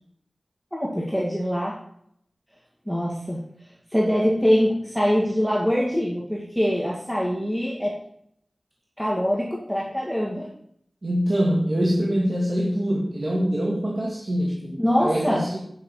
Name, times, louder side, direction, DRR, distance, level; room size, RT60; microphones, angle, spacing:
voice 1, 0.7-1.8 2.9-3.4 3.9-8.0 9.0-10.5 14.8-15.4, equal, 5° right, -4 dB, 2.2 m, -23 dB
voice 2, 11.0-15.6, equal, 55° right, -2 dB, 2.1 m, -24 dB
8.9 x 6.1 x 7.5 m, 0.70 s
wide cardioid pair, 55°, 0 cm